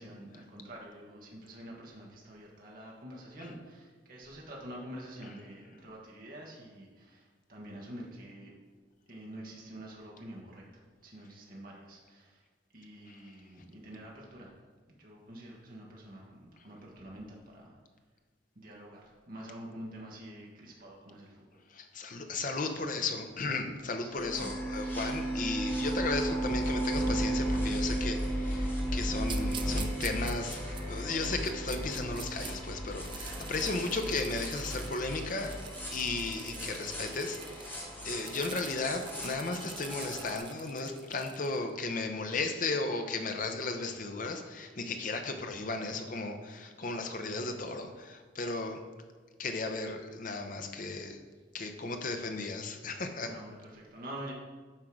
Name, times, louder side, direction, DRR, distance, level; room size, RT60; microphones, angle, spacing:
voice 1, 0.0-8.5 9.1-12.4 12.7-14.5 15.0-17.8 18.5-21.5 24.0-25.1 33.2-33.5 45.2-45.4 53.2-54.3, right 1 dB, 45° right, -2 dB, 1.3 m, -47 dB
voice 2, 21.7-30.6 30.9-35.5 35.9-48.8 49.4-51.2 51.5-53.3, left 3 dB, 45° left, 5 dB, 0.7 m, -35 dB
sound 1, 24.1-40.4, right 1 dB, 10° left, 1.4 m, -35 dB
sound 2, 29.2-32.5 32.9-41.6, right 7 dB, 25° right, 0.5 m, -47 dB
8.9 x 3.7 x 6.1 m, 1.4 s
head